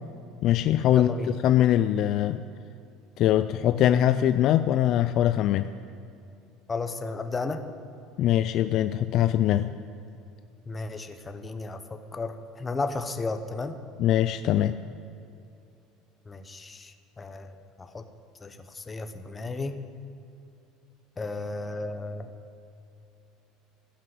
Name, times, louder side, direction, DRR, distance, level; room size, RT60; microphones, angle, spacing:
voice 1, 0.4-1.1 1.4-2.4 3.2-5.7 8.2-9.7 14.0-14.8, left 12 dB, 45° left, 12 dB, 0.3 m, -22 dB
voice 2, 0.9-1.4 6.7-7.6 10.7-13.8 16.3-18.1 18.4-19.8 21.2-22.3, left 3 dB, 15° left, 8 dB, 0.7 m, -34 dB
16.0 x 6.1 x 9.3 m, 2.7 s
cardioid pair, 160°, 0 cm